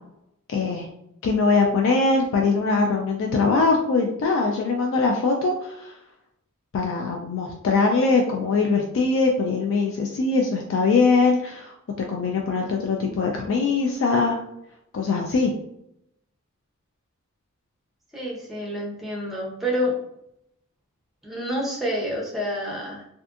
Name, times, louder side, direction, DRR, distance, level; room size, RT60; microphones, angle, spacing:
voice 1, 0.5-0.9 1.2-6.0 6.7-14.4 14.9-15.5, left 4 dB, 60° left, 1 dB, 0.3 m, -22 dB
voice 2, 18.1-20.0 21.2-23.1, equal, ahead, -3 dB, 0.6 m, -28 dB
2.6 x 2.4 x 2.4 m, 0.79 s
head